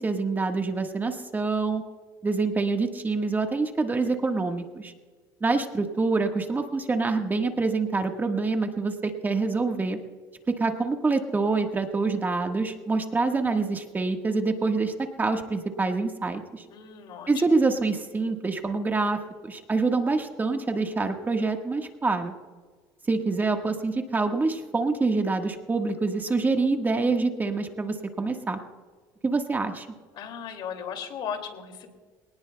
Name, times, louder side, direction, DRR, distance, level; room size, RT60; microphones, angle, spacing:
voice 1, 0.0-1.8 2.2-4.9 5.4-10.0 10.5-16.6 17.3-22.3 23.1-28.6 29.2-29.9, right 3 dB, 20° right, 4 dB, 1.5 m, -26 dB
voice 2, 16.7-17.3 30.2-31.9, left 7 dB, 60° left, 5 dB, 2.5 m, -36 dB
24.0 x 18.0 x 2.3 m, 1.5 s
cardioid pair, 105°, 9 cm